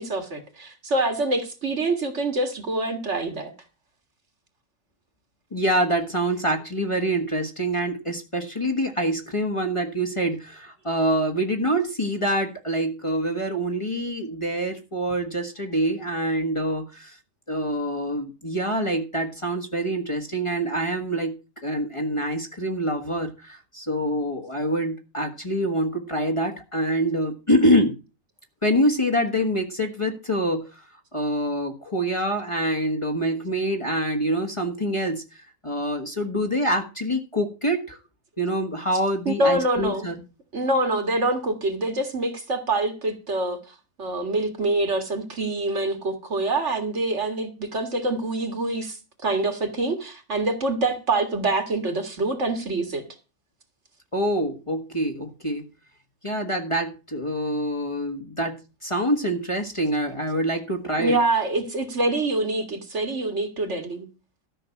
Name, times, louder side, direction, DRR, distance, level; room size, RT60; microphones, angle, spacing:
voice 1, 0.0-3.5 39.3-40.1 40.5-43.6 44.0-53.0 61.0-64.1, right 2 dB, 60° right, 2.3 m, -25 dB
voice 2, 5.5-17.2 17.5-28.0 28.6-30.7 31.1-38.0 38.4-40.2 54.1-55.6 56.2-61.2, right 1 dB, 25° left, 1.5 m, -25 dB
13.0 x 6.0 x 7.1 m
omnidirectional pair, 1.4 m